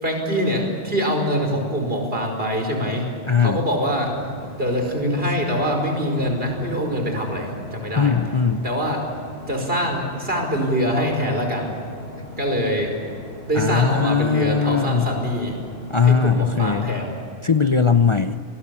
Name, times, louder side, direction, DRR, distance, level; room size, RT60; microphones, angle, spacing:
voice 1, 0.0-3.1 3.4-4.1 4.6-8.1 8.6-9.0 9.5-11.7 12.4-12.9 13.5-15.6 16.0-17.2, equal, 65° right, 3 dB, 5.5 m, -24 dB
voice 2, 3.3-3.6 8.0-8.7 13.5-15.1 15.9-16.9 17.4-18.4, left 6 dB, 30° left, 8 dB, 0.7 m, -19 dB
sound 1, 3.9-17.2, left 1 dB, 65° left, 6.0 m, -38 dB
28.0 x 21.0 x 8.5 m, 2.2 s
omnidirectional pair, 1.1 m